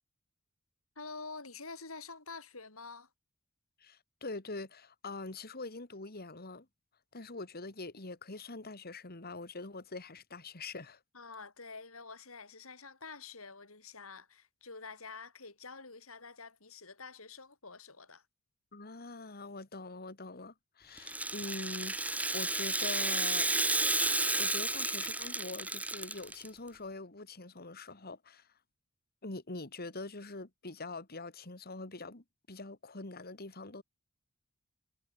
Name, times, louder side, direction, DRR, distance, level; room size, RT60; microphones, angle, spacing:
voice 1, 1.0-3.1 11.1-18.2, left 4 dB, 80° left, 6.3 m, -48 dB
voice 2, 3.8-6.7 7.1-11.0 18.7-23.8 24.4-28.5 29.2-33.8, left 3 dB, 45° left, 2.4 m, -44 dB
Rattle (instrument), 21.0-26.5, right 2 dB, 5° right, 1.8 m, -32 dB
head